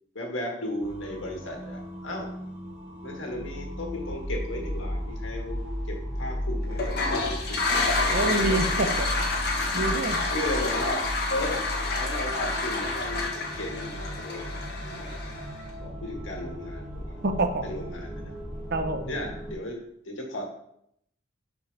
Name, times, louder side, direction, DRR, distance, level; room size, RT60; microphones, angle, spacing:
voice 1, 0.1-2.3 3.0-5.6 5.9-7.0 7.5-9.0 9.8-10.0 10.3-11.6 12.0-14.5 14.9-15.1 15.8-17.2 17.6-18.3 19.1-20.4, left 1 dB, 75° left, 1 dB, 2.0 m, -35 dB
sound 1, 0.8-19.5, equal, 5° right, 2.1 m, -35 dB
Toilet flush, 6.7-15.6, left 3 dB, 55° left, 1.5 m, -29 dB
voice 2, 8.1-9.1 9.4-10.2 17.2-17.7 18.7-19.1, right 2 dB, 50° right, 6 dB, 0.8 m, -27 dB
10.5 x 5.0 x 3.5 m, 0.73 s
head